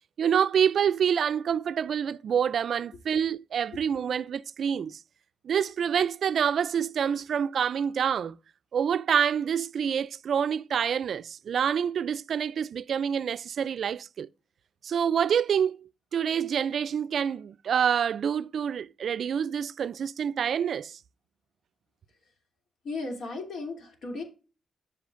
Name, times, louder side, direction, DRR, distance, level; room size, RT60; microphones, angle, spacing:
voice 1, 0.2-5.0 5.4-8.4 8.7-14.3 14.8-21.0, right 8 dB, 60° right, 0.3 m, -27 dB
voice 2, 22.8-24.2, left 3 dB, 65° left, 2.8 m, -35 dB
13.5 x 5.6 x 2.5 m
wide cardioid pair, 145°, 0 cm